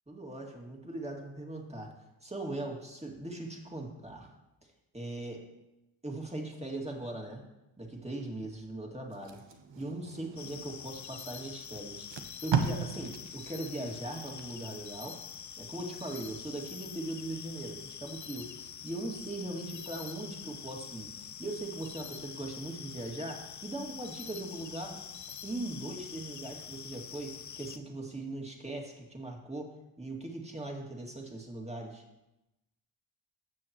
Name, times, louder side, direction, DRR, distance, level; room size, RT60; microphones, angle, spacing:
voice 1, 0.1-1.9 2.2-4.3 4.9-5.4 6.0-7.4 7.8-9.4 9.8-12.1 12.4-15.2 15.6-25.0 25.4-32.0, right 2 dB, 15° right, 1 dB, 2.3 m, -40 dB
Packing tape duct tape, 9.1-10.8 11.5-11.6 11.9-14.9 15.3-15.5, right 6 dB, 60° right, 1.1 m, -36 dB
sound 1, 10.4-27.8, left 8 dB, 35° left, 0.6 m, -45 dB
16.0 x 6.4 x 3.1 m, 0.94 s
supercardioid pair, 45°, 49 cm